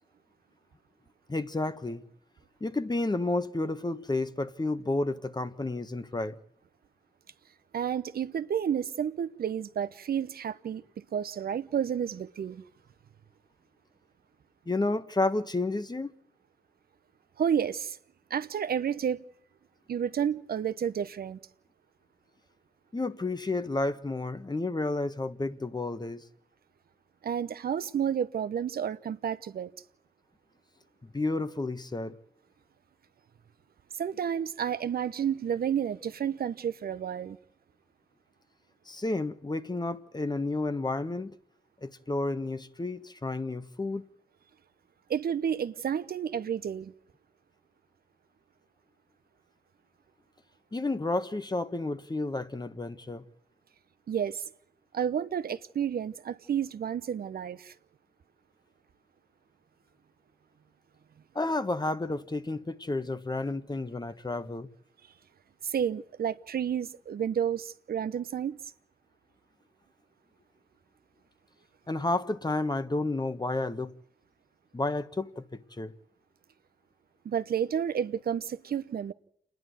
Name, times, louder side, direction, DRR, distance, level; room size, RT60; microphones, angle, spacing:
voice 1, 1.3-2.0 2.6-6.4 14.7-16.1 22.9-26.2 31.0-32.1 38.9-41.3 41.8-44.0 50.7-53.2 61.3-64.7 71.9-73.9 74.7-75.9, left 2 dB, 25° left, 1.4 m, -31 dB
voice 2, 7.7-10.8 11.1-12.6 17.4-18.0 18.3-19.2 19.9-21.4 27.2-29.7 33.9-37.4 45.1-46.9 54.1-54.4 54.9-57.7 65.6-68.6 77.2-79.1, right 8 dB, 65° right, 0.8 m, -31 dB
28.0 x 10.5 x 9.5 m
supercardioid pair, 45°, 17 cm